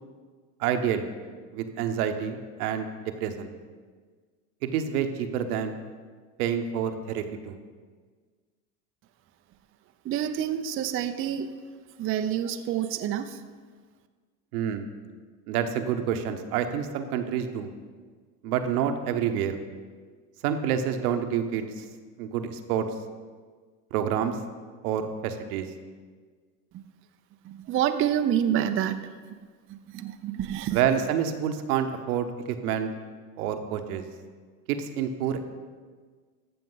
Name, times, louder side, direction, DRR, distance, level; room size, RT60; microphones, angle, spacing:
voice 1, 0.6-1.1 1.5-2.9 3.2-3.5 4.6-5.8 6.4-7.6 14.5-14.9 15.5-17.7 18.4-19.6 20.4-21.8 22.2-22.9 23.9-24.4 24.8-25.7 30.7-32.9 33.4-34.0 34.7-35.4, right 8 dB, 70° right, 7 dB, 1.0 m, -28 dB
voice 2, 10.1-11.5 12.0-13.5 27.5-29.0 29.9-30.8, right 10 dB, 30° right, 8 dB, 0.5 m, -27 dB
13.5 x 6.8 x 3.9 m, 1.6 s
hypercardioid pair, 85°, 46 cm